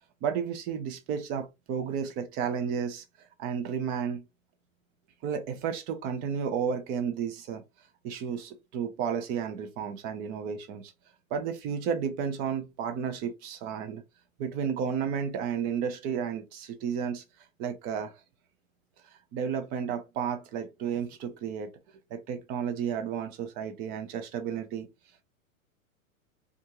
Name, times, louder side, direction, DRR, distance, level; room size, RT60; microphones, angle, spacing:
voice 1, 0.2-3.0 3.4-4.2 5.2-7.6 8.0-10.9 11.3-14.0 14.4-17.2 17.6-18.1 19.0-21.7 22.1-24.9, right 7 dB, 25° right, 0.4 m, -32 dB
2.6 x 2.3 x 2.8 m
hypercardioid pair, 115°, 42 cm